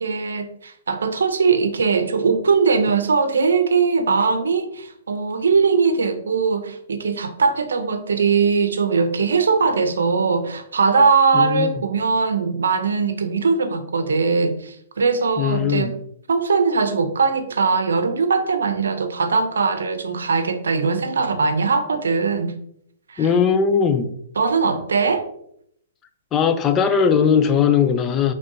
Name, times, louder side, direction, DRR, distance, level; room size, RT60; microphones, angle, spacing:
voice 1, 0.0-15.9 16.3-22.6 23.1-23.3 24.4-25.3, right 5 dB, 85° right, 0.6 m, -20 dB
voice 2, 11.3-11.7 15.4-15.9 23.2-24.1 26.3-28.3, left 7 dB, 20° left, 0.4 m, -19 dB
5.2 x 3.3 x 2.7 m
hypercardioid pair, 140°, 0 cm